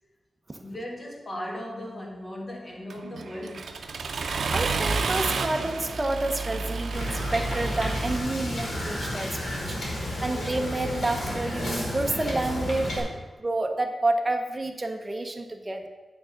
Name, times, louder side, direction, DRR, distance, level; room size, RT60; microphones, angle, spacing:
voice 1, 0.6-3.8, left 1 dB, 30° left, -1 dB, 1.8 m, -38 dB
Accelerating revving vroom, 2.9-8.2, right 4 dB, 75° right, 0.6 m, -30 dB
voice 2, 4.5-13.1 13.4-15.9, right 2 dB, 25° right, 4 dB, 0.8 m, -29 dB
Wind / Boat Water vehicle, 6.9-13.0, left 1 dB, 70° left, 2.3 m, -32 dB
9.0 x 3.6 x 6.4 m, 1.2 s
wide cardioid pair, 110°, 0 cm